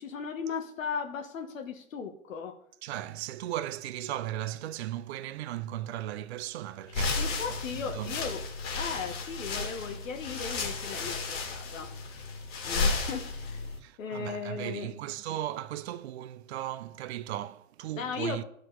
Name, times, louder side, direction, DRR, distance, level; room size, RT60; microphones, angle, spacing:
voice 1, 0.0-2.5 7.2-8.4 8.7-12.3 12.6-13.6 14.0-14.9 17.9-18.4, left 6 dB, 65° left, 1.3 m, -37 dB
voice 2, 2.8-7.6 7.9-8.1 13.8-18.4, right 13 dB, 50° right, 0.5 m, -37 dB
sound 1, 6.9-13.8, left 3 dB, 45° left, 2.5 m, -33 dB
12.5 x 4.8 x 3.9 m
hypercardioid pair, 125°, 43 cm